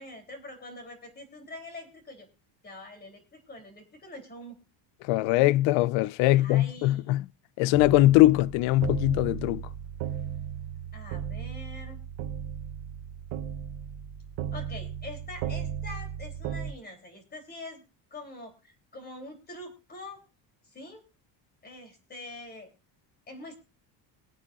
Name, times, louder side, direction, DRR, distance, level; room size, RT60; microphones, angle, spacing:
voice 1, 0.0-2.3 2.6-4.6 6.3-7.1 10.9-12.0 14.5-17.8 18.1-20.2 20.7-21.0 21.6-22.7 23.3-23.5, left 2 dB, 20° left, 3.3 m, -44 dB
voice 2, 5.0-7.2 7.6-9.6, left 17 dB, 85° left, 0.6 m, -22 dB
sound 1, 7.7-16.7, right 9 dB, 90° right, 1.0 m, -36 dB
22.5 x 8.5 x 2.5 m
cardioid pair, 160°, 45 cm